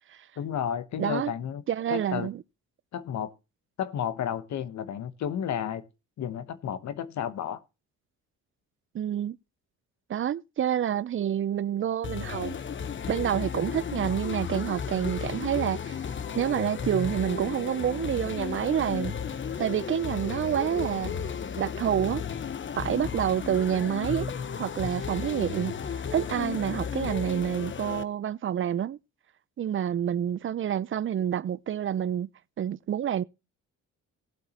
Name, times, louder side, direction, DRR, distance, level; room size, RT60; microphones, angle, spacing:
voice 1, 0.4-1.6 1.9-2.3 2.9-3.3 3.8-5.8 6.2-7.6, left 9 dB, 70° left, 1.1 m, -32 dB
voice 2, 1.0-1.3 1.7-2.4 8.9-9.4 10.1-12.5 13.1-16.0 16.4-19.2 19.6-21.1 21.6-22.2 22.8-24.3 24.6-25.7 26.1-29.0 29.6-32.3 32.6-33.2, right 9 dB, 40° right, 0.6 m, -28 dB
sound 1, 12.0-28.0, left 7 dB, 40° left, 1.0 m, -34 dB
18.0 x 7.9 x 2.9 m
cardioid pair, 90°, 30 cm